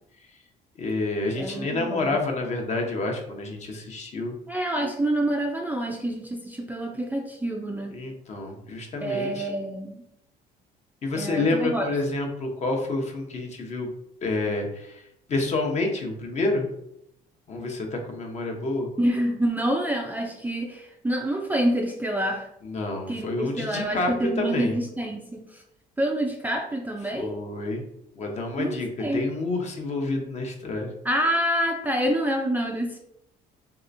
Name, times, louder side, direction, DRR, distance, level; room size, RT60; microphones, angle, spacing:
voice 1, 0.8-4.3 7.9-9.5 11.0-13.9 14.2-15.0 15.3-16.7 17.5-18.9 22.6-24.8 27.1-27.8 28.2-28.9 29.1-30.9, left 2 dB, 45° left, 2 dB, 0.8 m, -28 dB
voice 2, 1.4-2.2 4.5-7.9 9.0-10.0 11.1-11.9 19.0-22.5 23.1-25.6 26.0-27.4 28.6-28.7 29.0-29.2 31.0-33.0, right 1 dB, 10° right, 1 dB, 0.3 m, -27 dB
3.2 x 2.8 x 2.5 m, 0.78 s
cardioid pair, 110°, 17 cm